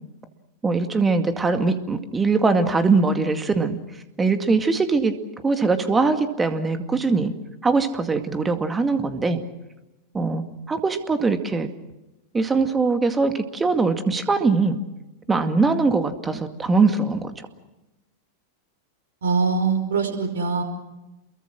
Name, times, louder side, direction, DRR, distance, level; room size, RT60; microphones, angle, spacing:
voice 1, 0.6-3.8 4.2-5.2 5.4-7.3 7.6-9.4 10.1-11.7 12.3-14.8 15.3-17.3, right 4 dB, 15° right, 9 dB, 2.2 m, -21 dB
voice 2, 19.2-20.6, right 4 dB, 65° right, 6 dB, 5.0 m, -22 dB
28.5 x 22.5 x 6.3 m, 1.0 s
figure-of-eight pair, 90°, 0 cm